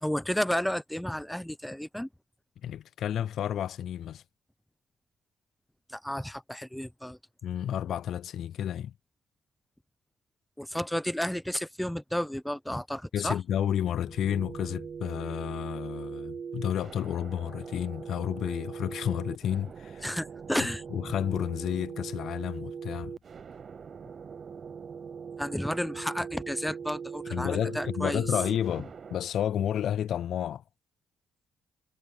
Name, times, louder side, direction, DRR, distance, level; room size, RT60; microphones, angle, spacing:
voice 1, 0.0-2.1 5.9-7.2 10.6-13.4 20.0-20.8 25.4-28.2, equal, 5° left, 0.7 m, -32 dB
voice 2, 2.6-4.2 7.4-8.9 13.1-20.1 20.9-23.1 27.3-30.6, left 10 dB, 70° left, 0.3 m, -31 dB
sound 1, 13.6-29.2, right 6 dB, 45° right, 0.5 m, -41 dB
cardioid pair, 90°, 0 cm